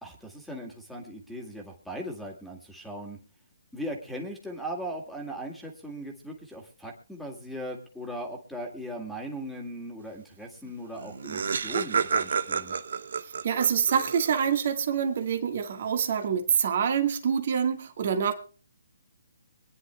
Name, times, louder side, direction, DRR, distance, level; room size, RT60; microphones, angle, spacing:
voice 1, 0.0-3.2 3.7-12.8, equal, ahead, 0 dB, 1.9 m, -38 dB
Laughter, 10.7-10.8 11.0-14.6, right 6 dB, 65° right, 0.6 m, -30 dB
voice 2, 13.2-18.3, right 7 dB, 50° right, 6 dB, 1.4 m, -26 dB
25.0 x 9.8 x 2.2 m, 0.38 s
hypercardioid pair, 155°, 0 cm